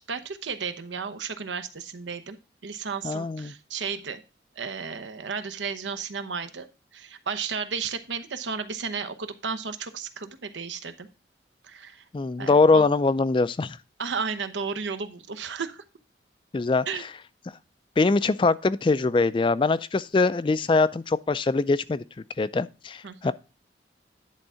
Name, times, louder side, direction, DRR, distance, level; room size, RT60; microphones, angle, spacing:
voice 1, 0.1-2.4 2.6-4.2 4.6-6.7 6.9-11.1 11.6-12.0 12.4-12.9 14.0-15.8 16.9-17.0 23.0-23.3, right 5 dB, 85° right, 0.8 m, -33 dB
voice 2, 3.0-3.5 12.1-13.8 16.5-16.9 18.0-22.0 22.4-23.3, left 3 dB, 30° left, 0.3 m, -22 dB
10.5 x 3.6 x 5.5 m
head